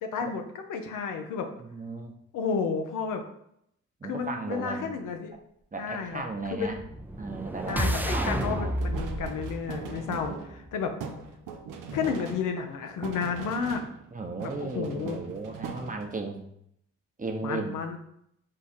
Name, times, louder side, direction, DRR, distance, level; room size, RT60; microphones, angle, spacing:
voice 1, 0.0-1.5 2.3-3.2 4.0-5.3 5.8-6.2 6.5-6.7 7.7-10.9 11.9-13.8 14.6-15.2 17.4-18.0, left 5 dB, 85° left, 5 dB, 0.7 m, -31 dB
voice 2, 1.6-2.1 4.0-4.9 5.7-6.8 7.2-8.8 14.1-16.4 17.2-17.8, right 3 dB, 25° right, 4 dB, 0.8 m, -35 dB
sound 1, 6.7-10.8, right 1 dB, 5° right, 0.5 m, -31 dB
sound 2, 7.7-14.1 14.4-16.3, right 5 dB, 85° right, 0.6 m, -41 dB
4.7 x 2.3 x 4.3 m, 0.73 s
supercardioid pair, 45°, 31 cm